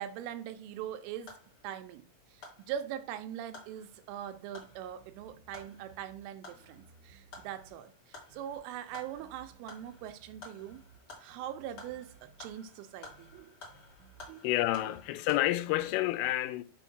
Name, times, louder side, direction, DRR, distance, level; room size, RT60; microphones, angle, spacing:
voice 1, 0.0-1.4 1.6-10.8 11.2-13.6 14.3-14.4, right 10 dB, 85° right, 3.1 m, -42 dB
sound 1, 0.7-15.4, left 3 dB, 45° left, 1.8 m, -54 dB
sound 2, 4.7-6.2 6.5-7.7 8.3-8.6 8.9-11.0 11.3-12.5 13.1-13.4 13.7-14.3, right 4 dB, 70° right, 2.0 m, -60 dB
voice 2, 14.4-16.6, left 16 dB, 85° left, 3.1 m, -29 dB
7.2 x 3.5 x 6.1 m
omnidirectional pair, 5.7 m